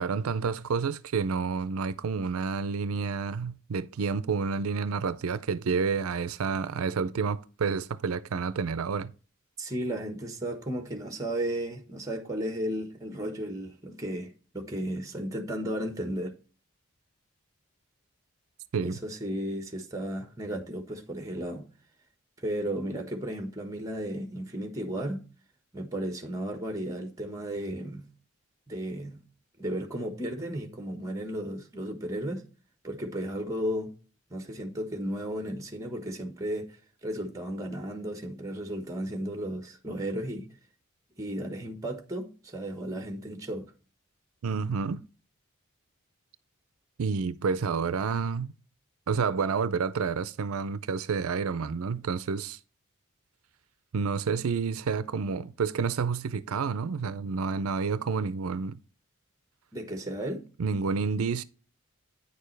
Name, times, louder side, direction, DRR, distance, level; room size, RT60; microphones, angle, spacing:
voice 1, 0.0-9.1 18.7-18.9 44.4-45.0 47.0-48.5 49.1-52.6 53.9-58.8 60.6-61.4, right 5 dB, 85° right, 0.5 m, -29 dB
voice 2, 9.6-16.3 18.8-21.6 22.4-25.2 25.7-28.1 28.7-29.2 29.6-32.4 32.8-33.9 34.3-36.7 37.0-40.5 41.2-43.7 59.7-60.4, right 1 dB, 15° right, 1.3 m, -34 dB
9.5 x 6.7 x 3.2 m
head